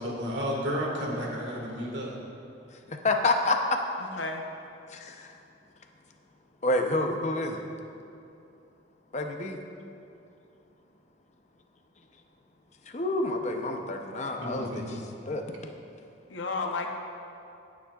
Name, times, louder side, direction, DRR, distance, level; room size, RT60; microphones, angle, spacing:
voice 1, 0.0-2.2 14.4-15.0, equal, 70° right, -2 dB, 2.0 m, -32 dB
voice 2, 2.9-3.6 4.9-5.3 6.6-7.6 9.1-9.6 12.9-14.8 15.3-15.4, left 2 dB, 35° left, 3 dB, 0.6 m, -28 dB
voice 3, 4.1-4.4 16.3-16.9, left 3 dB, 75° left, 3 dB, 0.8 m, -32 dB
19.0 x 7.2 x 2.4 m, 2.7 s
head